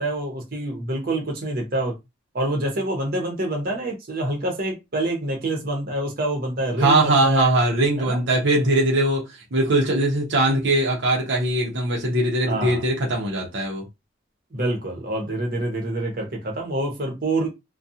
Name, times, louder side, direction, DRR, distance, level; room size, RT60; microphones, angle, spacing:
voice 1, 0.0-2.0 2.3-7.5 8.0-8.2 12.5-12.8 14.5-17.5, right 1 dB, 50° right, 0.9 m, -26 dB
voice 2, 6.8-13.8, right 1 dB, 80° right, 0.8 m, -21 dB
2.4 x 2.3 x 2.7 m
head